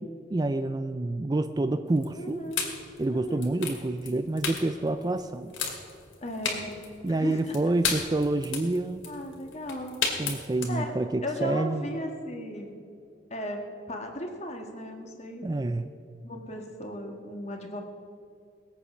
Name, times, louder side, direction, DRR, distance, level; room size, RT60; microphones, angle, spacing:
voice 1, 0.3-2.4 3.0-5.5 7.0-9.0 10.2-12.0 15.4-15.9, right 2 dB, 20° right, 10 dB, 0.3 m, -28 dB
sound 1, 1.9-10.7, left 5 dB, 85° left, 2.3 m, -33 dB
voice 2, 2.1-2.7 3.1-3.5 6.2-6.7 7.1-7.6 9.1-10.0 10.7-10.9 11.2-12.7 13.3-13.6 13.9-15.5 16.2-17.8, equal, 35° left, 3 dB, 1.6 m, -36 dB
20.0 x 8.3 x 6.1 m, 2.4 s
head